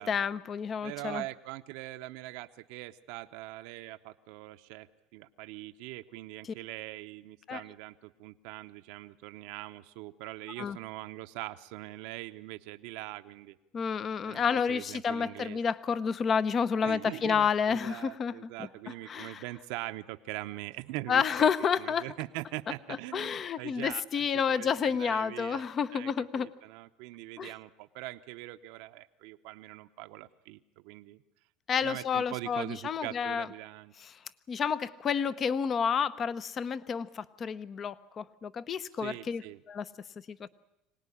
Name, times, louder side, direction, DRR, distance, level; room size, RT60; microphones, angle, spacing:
voice 1, 0.0-1.2 7.5-7.6 10.6-10.8 13.7-18.5 19.1-19.4 21.1-22.1 23.1-26.5 27.4-27.5 31.7-33.5 34.5-39.4 39.7-39.8 40.3-40.5, left 6 dB, 35° left, 15 dB, 0.8 m, -30 dB
voice 2, 0.8-13.6 14.2-15.6 16.8-21.5 21.8-25.6 25.9-31.2 31.8-33.9 39.0-39.6, right 18 dB, 75° right, 9 dB, 0.8 m, -42 dB
25.0 x 18.5 x 10.0 m, 0.89 s
supercardioid pair, 120°, 0 cm